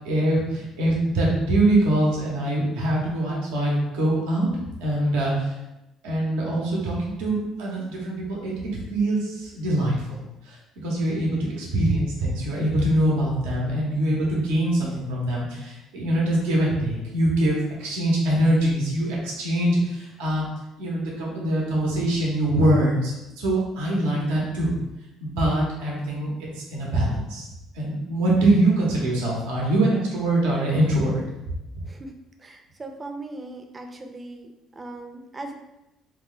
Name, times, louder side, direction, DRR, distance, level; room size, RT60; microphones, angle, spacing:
voice 1, 0.0-4.5 4.8-5.5 6.0-8.5 8.9-10.6 10.8-20.5 20.8-24.7 25.2-27.4 27.7-31.2 31.7-31.8, right 1 dB, 90° right, -3 dB, 0.8 m, -23 dB
voice 2, 32.4-35.5, right 2 dB, 25° right, 5 dB, 0.5 m, -39 dB
2.8 x 2.1 x 3.8 m, 0.94 s
supercardioid pair, 75°, 0 cm